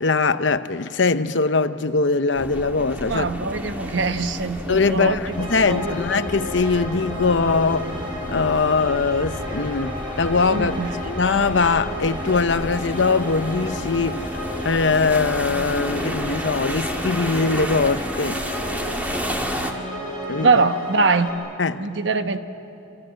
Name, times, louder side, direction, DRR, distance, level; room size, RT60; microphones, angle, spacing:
voice 1, 0.0-3.3 4.7-7.9 8.3-10.7 11.0-14.3 14.6-18.4 20.3-20.5 21.6-21.9, left 4 dB, 65° left, 0.8 m, -21 dB
sound 1, 2.3-19.7, equal, 10° right, 1.8 m, -31 dB
voice 2, 3.0-5.4 5.7-6.0 10.5-10.9 20.4-21.3 21.8-22.4, right 3 dB, 65° right, 1.2 m, -22 dB
sound 2, 5.3-21.3, equal, 25° right, 6.0 m, -33 dB
28.0 x 27.0 x 7.6 m
head